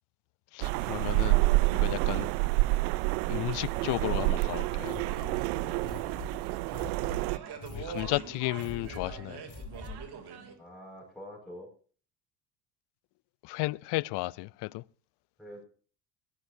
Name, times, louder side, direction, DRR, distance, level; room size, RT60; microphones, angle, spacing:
voice 1, 0.5-1.4 1.7-2.3 3.3-5.0 7.7-9.4 13.4-14.8, left 22 dB, 60° left, 0.6 m, -33 dB
sound 1, 0.6-7.4, right 21 dB, 75° right, 0.6 m, -28 dB
sound 2, 4.5-10.5, right 7 dB, 50° right, 3.3 m, -45 dB
sound 3, 4.8-10.2, left 3 dB, 35° left, 4.2 m, -45 dB
voice 2, 5.5-5.9 10.6-11.7 15.4-15.7, equal, ahead, 6.0 m, -46 dB
18.0 x 17.0 x 2.8 m
hypercardioid pair, 65°, 49 cm